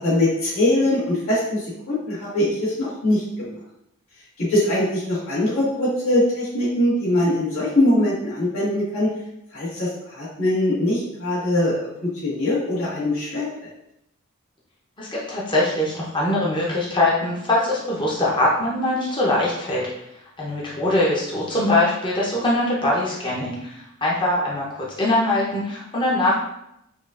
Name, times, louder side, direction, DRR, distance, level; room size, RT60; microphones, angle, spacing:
voice 1, 0.0-3.5 4.4-9.1 9.5-13.5, left 1 dB, 75° left, -8 dB, 1.5 m, -22 dB
voice 2, 15.0-19.9 20.4-26.4, left 1 dB, 25° left, -5 dB, 0.7 m, -22 dB
5.4 x 2.4 x 2.4 m, 0.80 s
head